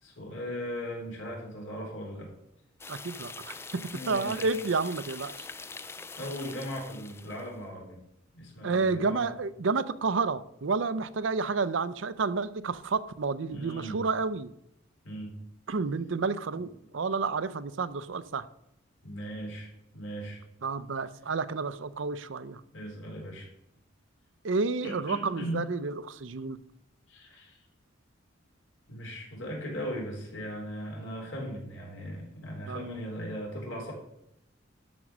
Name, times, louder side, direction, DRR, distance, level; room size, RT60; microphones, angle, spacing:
voice 1, 0.0-2.3 3.9-4.6 5.4-5.6 6.2-8.0 8.3-9.3 13.5-14.0 15.0-15.3 16.5-16.7 19.0-20.4 22.7-23.5 24.8-25.6 27.1-27.6 28.9-33.9, equal, 75° left, 3.8 m, -38 dB
sound 1, 2.8-7.5, left 4 dB, 15° left, 0.3 m, -43 dB
voice 2, 2.9-3.6 4.1-5.5 8.6-14.5 15.7-18.5 20.6-22.6 24.4-26.6 32.7-32.9, right 4 dB, 70° right, 0.6 m, -30 dB
12.5 x 5.2 x 6.1 m
head